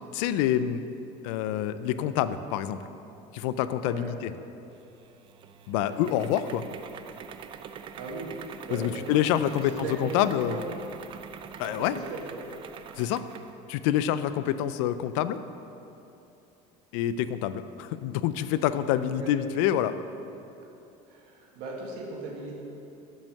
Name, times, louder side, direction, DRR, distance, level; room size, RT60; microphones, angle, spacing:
voice 1, 0.1-0.8 1.2-2.8 3.3-4.3 5.7-6.6 8.7-10.6 11.6-12.0 13.0-13.2 13.7-15.4 16.9-19.9, left 11 dB, 85° left, 13 dB, 0.4 m, -27 dB
sound 1, 4.8-13.6, right 7 dB, 35° right, 0.3 m, -44 dB
voice 2, 8.0-8.3 8.6-9.0 9.6-10.6 11.6-12.4 19.1-19.3 21.1-22.6, right 3 dB, 75° right, -2 dB, 1.7 m, -38 dB
7.0 x 5.4 x 6.4 m, 2.8 s
cardioid pair, 135°, 16 cm